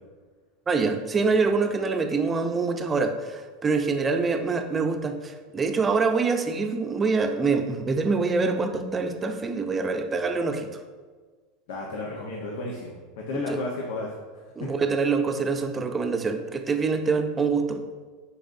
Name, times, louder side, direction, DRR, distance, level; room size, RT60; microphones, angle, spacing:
voice 1, 0.7-10.7 13.3-13.6 14.6-17.8, right 4 dB, 20° right, 6 dB, 0.6 m, -25 dB
voice 2, 11.7-14.1 14.6-14.7, left 2 dB, 80° left, -1 dB, 0.9 m, -33 dB
10.5 x 4.1 x 2.6 m, 1.5 s
supercardioid pair, 120°, 0 cm